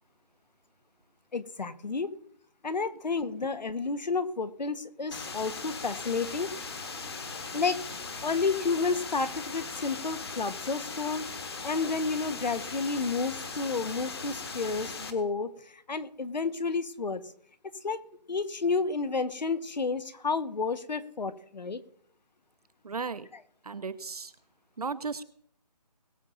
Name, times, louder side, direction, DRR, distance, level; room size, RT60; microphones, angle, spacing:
voice 1, 1.3-2.1 2.6-6.5 7.5-7.8 8.2-17.2 17.8-18.0 18.3-21.8, left 4 dB, 85° left, 11 dB, 1.4 m, -31 dB
sound 1, 5.1-15.1, left 4 dB, 35° left, 1.4 m, -39 dB
voice 2, 22.8-23.3 23.6-24.3 24.8-25.2, right 4 dB, 60° right, 14 dB, 1.0 m, -35 dB
21.5 x 7.2 x 3.9 m, 0.62 s
hypercardioid pair, 175°, 21 cm